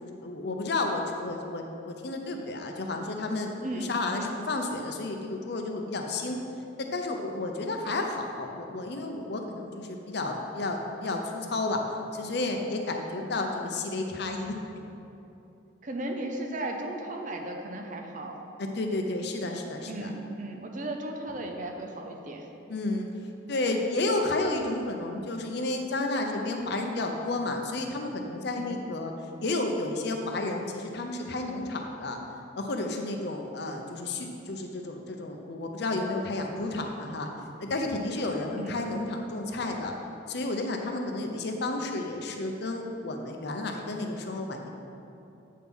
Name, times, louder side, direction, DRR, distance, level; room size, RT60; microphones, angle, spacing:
voice 1, 0.0-6.4 6.8-11.8 12.1-14.8 18.6-20.1 22.7-23.1 23.5-29.1 29.4-32.2 32.6-37.3 37.6-39.9 40.3-44.7, left 2 dB, 55° left, 3 dB, 0.6 m, -31 dB
voice 2, 3.6-3.9 15.8-18.4 19.9-22.5 28.6-28.8 38.6-38.8, right 1 dB, 40° right, 2 dB, 0.7 m, -35 dB
8.3 x 3.6 x 6.0 m, 2.8 s
head